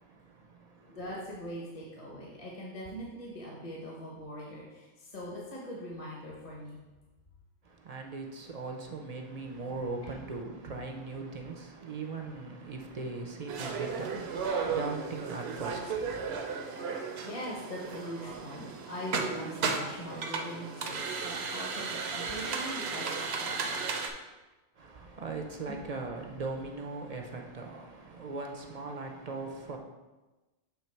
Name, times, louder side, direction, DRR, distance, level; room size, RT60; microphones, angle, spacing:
voice 1, 0.9-6.8 10.0-10.3 14.1-14.3 14.6-14.8 17.2-23.8 25.7-25.8, equal, 30° left, -4 dB, 1.1 m, -42 dB
voice 2, 7.8-16.4 24.8-29.8, right 3 dB, 45° right, 2 dB, 0.6 m, -39 dB
sound 1, 13.5-24.1, right 5 dB, 70° right, 0.9 m, -35 dB
7.2 x 3.4 x 4.5 m, 1.1 s
omnidirectional pair, 1.2 m